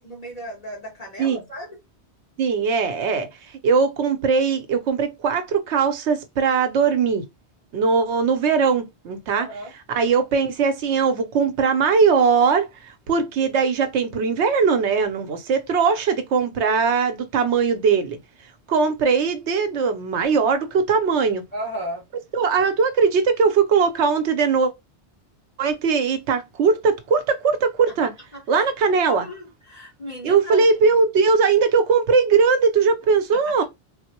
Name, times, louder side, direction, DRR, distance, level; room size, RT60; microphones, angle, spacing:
voice 1, 0.0-1.8 9.3-9.7 21.5-22.0 28.3-28.7 29.0-30.6 33.3-33.6, equal, 35° left, 1.1 m, -35 dB
voice 2, 2.4-3.3 3.6-7.2 7.7-9.5 9.9-18.2 18.7-21.4 22.3-24.7 25.6-28.1 28.5-29.3 30.2-33.6, right 5 dB, 80° right, 0.9 m, -20 dB
3.9 x 2.1 x 2.8 m
omnidirectional pair, 1.1 m